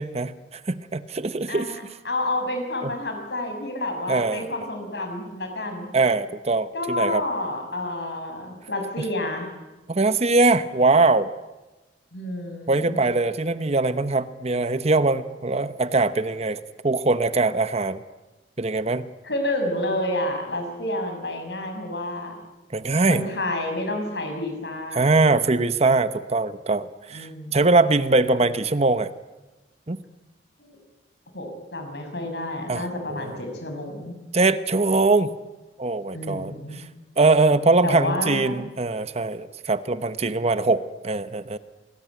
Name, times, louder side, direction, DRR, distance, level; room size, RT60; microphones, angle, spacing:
voice 1, 0.0-1.7 2.8-2.9 4.1-4.5 5.9-7.2 9.9-11.3 12.7-18.0 18.6-19.1 22.7-23.3 24.9-29.1 29.9-30.0 32.7-33.4 34.3-35.3 35.8-36.8 37.2-41.6, right 3 dB, 35° right, 12 dB, 1.0 m, -22 dB
voice 2, 2.0-5.9 6.7-9.5 12.1-13.0 19.2-22.3 23.1-25.1 27.1-27.6 28.3-28.5 30.6-30.8 31.3-34.1 36.1-36.8 37.8-38.6, left 1 dB, 70° left, 5 dB, 6.3 m, -29 dB
28.0 x 20.0 x 9.4 m, 1.1 s
head